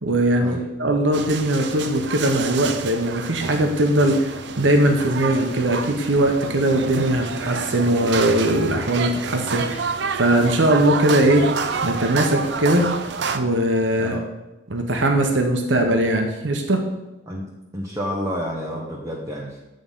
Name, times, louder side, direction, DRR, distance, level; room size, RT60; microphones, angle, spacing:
voice 1, 0.0-4.3 4.6-9.8 10.1-11.5 11.8-12.9 13.3-14.2 14.7-16.8, right 1 dB, 85° right, 4 dB, 1.0 m, -20 dB
sound 1, 1.1-13.4, right 5 dB, 65° right, 0.5 m, -29 dB
voice 2, 17.7-19.6, equal, 15° right, -4 dB, 0.9 m, -29 dB
8.8 x 3.8 x 5.5 m, 1.0 s
head